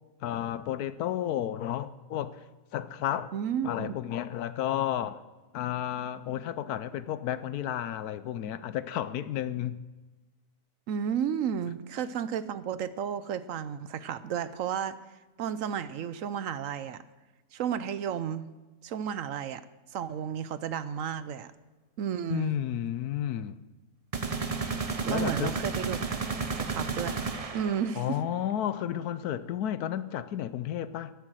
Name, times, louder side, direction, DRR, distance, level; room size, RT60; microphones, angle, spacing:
voice 1, 0.2-2.4 2.7-3.3 3.6-5.2 5.5-9.8 22.3-23.5 25.1-25.5 28.0-31.1, left 11 dB, 80° left, 1.1 m, -32 dB
voice 2, 3.3-3.9 10.9-15.0 15.4-17.0 17.5-18.5 18.8-19.6 19.9-21.5 22.0-22.6 25.0-26.0 26.7-27.2 27.5-28.2, right 8 dB, 65° right, 0.9 m, -32 dB
sound 1, 24.1-28.1, right 4 dB, 35° right, 0.6 m, -32 dB
13.0 x 10.5 x 6.2 m
omnidirectional pair, 1.7 m